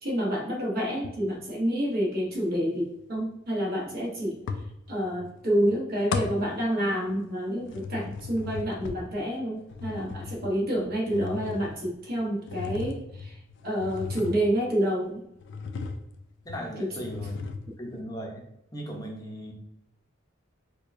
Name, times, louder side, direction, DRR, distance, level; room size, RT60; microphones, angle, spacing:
voice 1, 0.0-4.4 4.9-13.3 13.6-15.2 16.8-16.9, equal, 50° right, -4 dB, 1.1 m, -28 dB
sound 1, 1.0-1.5 4.5-5.3 5.6-7.3 7.6-14.9 15.4-16.2 16.5-16.6 17.0-17.9, left 4 dB, 65° left, 0.4 m, -37 dB
voice 2, 16.4-17.4 17.8-19.5, equal, 20° left, 0 dB, 0.7 m, -37 dB
4.5 x 2.3 x 2.6 m, 0.82 s
head